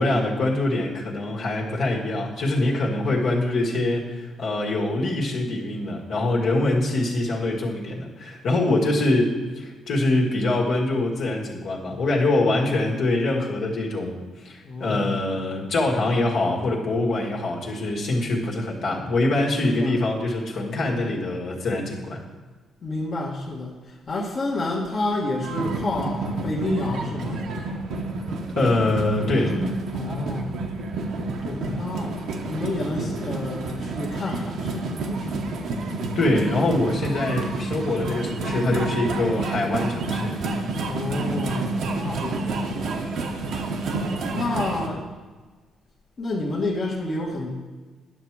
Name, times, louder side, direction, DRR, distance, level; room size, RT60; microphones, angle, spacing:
voice 1, 0.0-22.2 28.6-29.5 36.2-40.3, left 2 dB, 70° left, -2 dB, 1.7 m, -24 dB
voice 2, 14.6-15.2 19.6-20.0 22.8-27.4 29.3-30.6 31.4-35.5 40.9-42.8 44.3-45.1 46.2-47.5, left 2 dB, 45° left, -4 dB, 1.3 m, -30 dB
sound 1, 25.4-44.9, right 3 dB, 75° right, 1.0 m, -29 dB
10.0 x 6.0 x 4.7 m, 1.3 s
cardioid pair, 90°, 0 cm